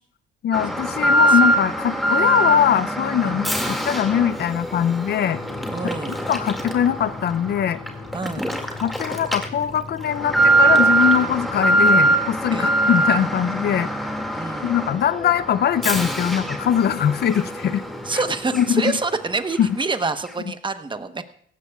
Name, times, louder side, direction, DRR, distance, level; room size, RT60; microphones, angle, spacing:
voice 1, 0.4-5.4 6.3-7.8 8.8-13.9 14.6-17.8 18.1-18.2 18.5-18.9 19.6-19.7, left 9 dB, 55° left, 14 dB, 0.5 m, -21 dB
Alarm, 0.5-19.2 19.5-19.6 20.2-20.3, right 2 dB, ahead, 2.2 m, -23 dB
voice 2, 1.0-1.4 3.2-3.4 5.7-6.2 8.1-8.5 12.5-12.7 14.3-14.7 18.0-21.2, right 3 dB, 25° right, 9 dB, 1.0 m, -27 dB
sound 1, 5.3-19.4, left 5 dB, 75° left, 2.5 m, -42 dB
17.5 x 15.5 x 2.4 m, 0.65 s
cardioid pair, 90°, 20 cm